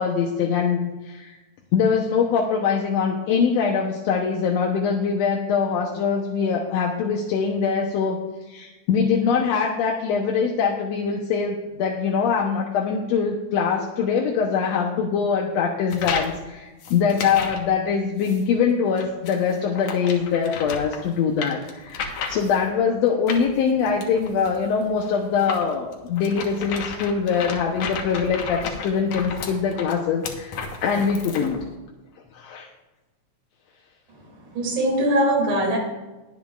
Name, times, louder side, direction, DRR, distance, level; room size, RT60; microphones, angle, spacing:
voice 1, 0.0-1.4 1.7-31.6 32.3-32.7, left 6 dB, 70° left, 0 dB, 2.0 m, -23 dB
sound 1, 15.9-16.4 16.8-17.7 18.2-18.4 19.0-22.7 23.3-31.6, left 5 dB, 85° left, 2.7 m, -33 dB
voice 2, 34.5-35.8, right 1 dB, 75° right, -1 dB, 4.1 m, -21 dB
21.0 x 9.3 x 2.4 m, 1.1 s
omnidirectional pair, 3.4 m